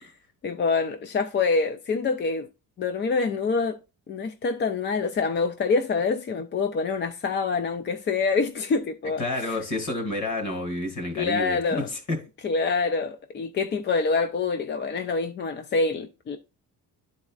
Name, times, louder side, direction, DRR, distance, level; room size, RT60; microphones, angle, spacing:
voice 1, 0.4-2.5 2.8-3.8 4.1-9.2 11.2-11.9 12.4-16.4, left 4 dB, 30° left, 0.4 m, -26 dB
voice 2, 9.2-12.2, left 1 dB, 45° left, 2.3 m, -29 dB
11.5 x 4.1 x 2.4 m
cardioid pair, 170°, 37 cm